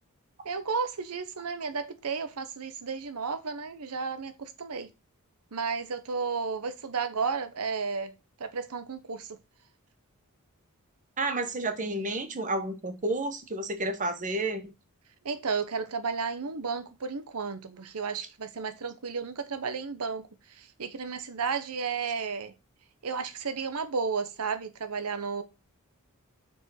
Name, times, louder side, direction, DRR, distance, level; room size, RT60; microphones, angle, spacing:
voice 1, 0.4-4.9 5.5-8.1 8.4-9.4 15.2-22.5 23.0-25.4, right 5 dB, 80° right, 0.9 m, -33 dB
voice 2, 11.2-14.7, right 2 dB, 35° right, 1.2 m, -31 dB
6.5 x 5.2 x 6.3 m
head